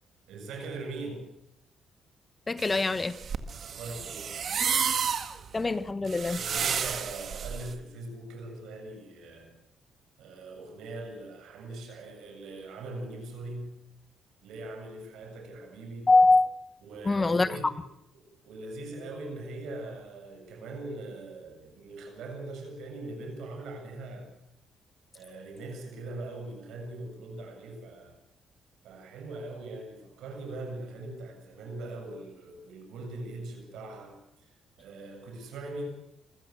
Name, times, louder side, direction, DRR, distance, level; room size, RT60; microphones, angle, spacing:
voice 1, 0.3-1.3 3.6-4.3 6.3-9.5 10.2-13.7 14.4-16.1 16.8-17.8 18.4-24.3 25.1-28.2 28.8-34.2 34.8-35.9, right 2 dB, 85° right, 4 dB, 7.6 m, -41 dB
voice 2, 2.5-3.2 5.5-6.4 16.1-16.5 17.1-17.7, left 3 dB, 25° left, 15 dB, 1.2 m, -23 dB
sound 1, 2.6-7.7, right 7 dB, 55° right, 1.9 m, -31 dB
27.0 x 15.5 x 7.9 m, 0.83 s
cardioid pair, 90°, 0 cm